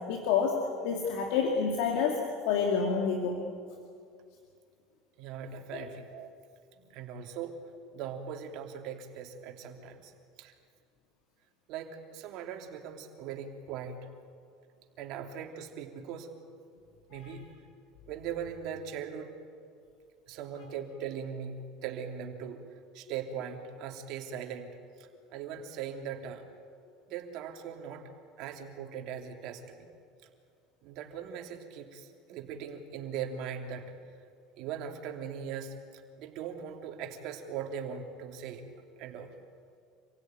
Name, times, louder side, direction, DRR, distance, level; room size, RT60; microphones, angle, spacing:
voice 1, 0.1-3.4 5.7-5.9 17.1-17.3, left 6 dB, 75° left, 2 dB, 2.5 m, -29 dB
voice 2, 5.2-6.3 6.9-7.6 7.9-10.1 10.4-10.5 11.7-14.1 15.0-16.3 17.1-17.5 18.1-19.3 20.3-22.6 22.9-26.5 27.1-28.1 28.4-29.8 30.8-34.0 34.6-38.7 39.0-39.3, right 7 dB, 65° right, 3 dB, 3.1 m, -40 dB
27.0 x 16.5 x 9.6 m, 2.3 s
supercardioid pair, 105°, 0 cm